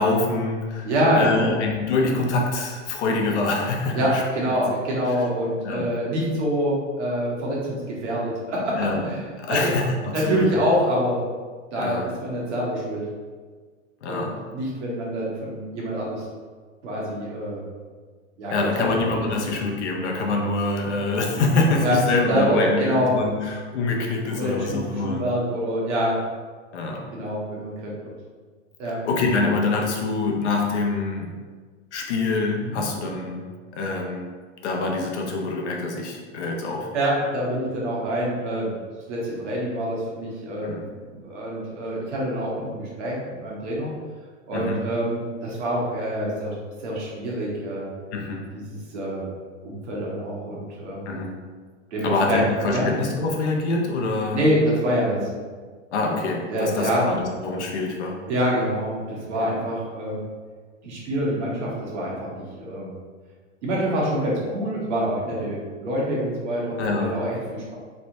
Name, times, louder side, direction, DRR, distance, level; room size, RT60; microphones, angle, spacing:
voice 1, 0.0-4.2 4.5-4.6 5.6-5.9 8.8-9.1 9.4-10.5 11.8-12.1 14.0-14.4 18.5-25.2 26.7-27.0 29.0-31.3 31.9-33.4 33.7-34.3 34.6-36.9 40.6-40.9 44.5-44.9 48.1-48.4 51.1-51.4 52.0-54.4 55.9-58.2 59.4-59.5 66.8-67.1, left 3 dB, 70° left, 1 dB, 0.8 m, -25 dB
voice 2, 0.8-1.6 2.2-2.3 3.9-9.7 10.1-11.2 11.7-13.0 14.1-14.3 14.5-16.3 16.8-17.6 18.4-19.5 21.8-22.0 22.3-23.1 24.3-26.2 27.1-27.9 28.8-29.0 32.6-32.8 36.9-38.7 39.1-43.9 44.5-46.5 46.8-47.9 48.5-49.2 49.6-51.1 51.9-52.4 52.7-52.9 54.3-55.3 56.5-57.0 58.3-60.2 60.8-62.9 63.6-67.7, equal, 70° right, -4 dB, 1.3 m, -26 dB
3.3 x 3.0 x 2.7 m, 1.5 s
hypercardioid pair, 100°, 36 cm